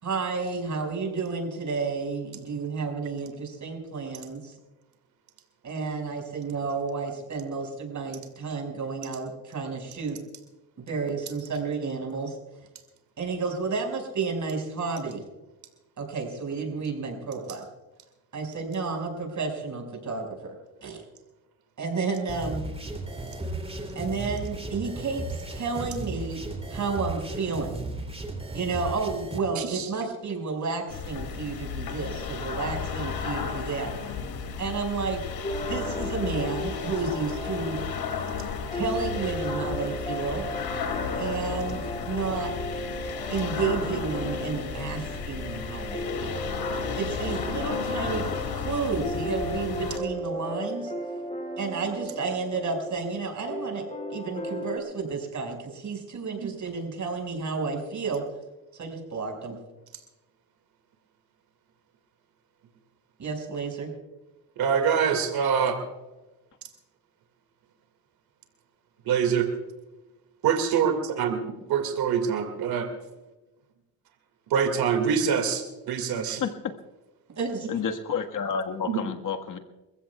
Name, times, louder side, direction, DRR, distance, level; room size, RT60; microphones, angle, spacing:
voice 1, 0.0-4.6 5.6-10.2 10.8-12.4 13.2-15.2 16.0-17.6 18.3-20.5 20.8-21.0 21.8-22.6 24.0-26.4 26.7-27.7 28.5-34.2 34.6-35.2 35.7-37.8 38.7-40.5 41.2-42.5 43.3-48.3 48.6-50.9 51.6-53.8 54.1-58.2 58.7-59.6 63.2-63.9 77.4-77.7, right 4 dB, 50° right, 2 dB, 5.6 m, -31 dB
sound 1, 22.3-29.4, right 2 dB, 15° right, 3.0 m, -35 dB
voice 2, 29.5-29.8 64.6-65.8 69.1-69.5 70.4-70.9 71.2-71.4 71.7-72.9 74.5-76.4 78.9-79.0, right 7 dB, 80° right, 6 dB, 2.2 m, -24 dB
sound 2, 30.9-50.0, left 6 dB, 75° left, 2.6 m, -33 dB
sound 3, 35.4-54.8, equal, 20° left, 3.1 m, -36 dB
voice 3, 76.4-76.7 77.7-79.6, left 6 dB, 55° left, 5 dB, 1.6 m, -30 dB
29.0 x 15.5 x 2.3 m, 1.1 s
cardioid pair, 90°, 37 cm